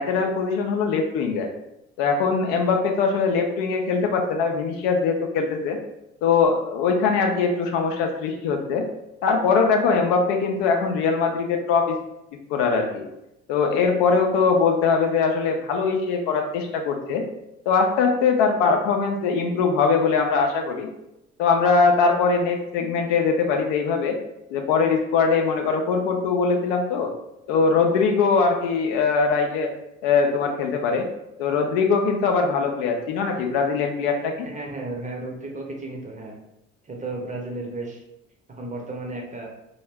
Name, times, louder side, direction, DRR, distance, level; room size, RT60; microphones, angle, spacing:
voice 1, 0.0-1.5 2.0-5.8 6.2-8.9 9.2-12.0 12.5-13.0 13.5-17.2 17.7-20.9 21.4-24.2 24.5-27.1 27.5-29.7 30.0-31.1 31.4-34.5, left 5 dB, 65° left, 3 dB, 0.5 m, -21 dB
voice 2, 34.4-36.4 36.8-38.0 38.5-39.5, right 2 dB, 20° right, 0 dB, 0.6 m, -33 dB
2.5 x 2.1 x 3.3 m, 0.87 s
figure-of-eight pair, 50°, 36 cm